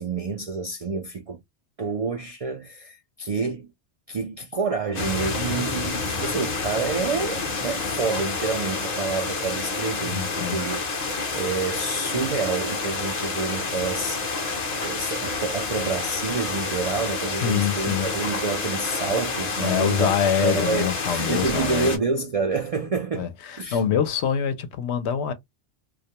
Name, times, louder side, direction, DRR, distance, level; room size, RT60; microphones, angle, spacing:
voice 1, 0.0-1.4 1.8-3.7 4.1-10.8 11.3-14.4 14.8-20.1 20.4-23.3 23.6-23.8, right 4 dB, 60° right, 0.3 m, -28 dB
sound 1, 4.9-22.0, left 4 dB, 45° left, 0.6 m, -29 dB
voice 2, 10.0-10.7 17.3-18.1 19.6-22.0 23.2-25.3, left 8 dB, 75° left, 0.8 m, -25 dB
2.3 x 2.1 x 2.7 m
omnidirectional pair, 1.1 m